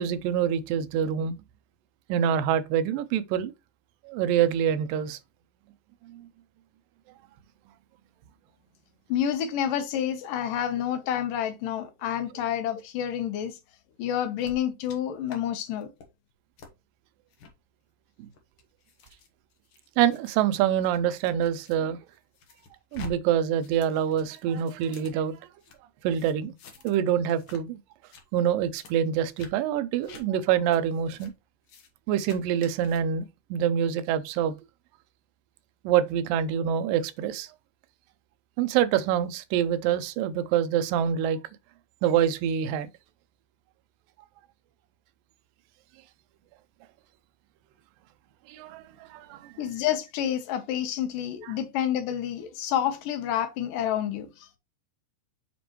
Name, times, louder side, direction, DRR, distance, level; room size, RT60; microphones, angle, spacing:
voice 1, 0.0-1.4 2.1-3.5 4.1-5.2 6.1-6.2 18.2-18.3 20.0-22.0 22.9-25.4 26.0-26.5 26.8-27.8 28.3-31.3 32.1-34.6 35.8-37.5 38.6-41.4 42.0-42.9 48.5-48.8 49.1-49.5, right 9 dB, 90° right, 2.3 m, -26 dB
voice 2, 9.1-13.6 14.0-15.9 49.6-54.6, left 10 dB, 80° left, 2.5 m, -29 dB
sound 1, 14.4-15.0 15.3-15.4 15.8-16.1 16.6-16.7 17.3-17.5 18.2-21.8 22.1-23.1 23.4-25.8 26.2-27.0 27.3-27.6 27.9-28.2 28.7-28.9 29.4-29.5 30.0-30.2 30.7-30.8 31.2-31.3 31.6-31.9 32.2-33.0, left 5 dB, 60° left, 1.8 m, -48 dB
6.8 x 5.0 x 3.0 m
omnidirectional pair, 3.9 m